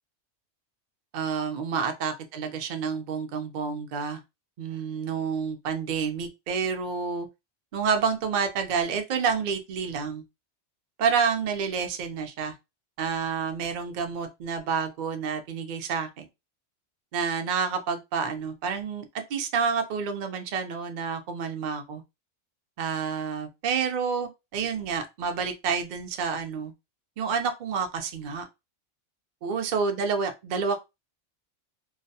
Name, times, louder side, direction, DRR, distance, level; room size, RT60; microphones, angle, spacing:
voice 1, 1.1-4.2 4.6-7.3 7.7-10.2 11.0-12.5 13.0-16.3 17.1-22.0 22.8-26.7 27.2-28.4 29.4-30.8, right 6 dB, 60° right, 0.5 m, -29 dB
2.3 x 2.2 x 2.6 m
omnidirectional pair, 1.2 m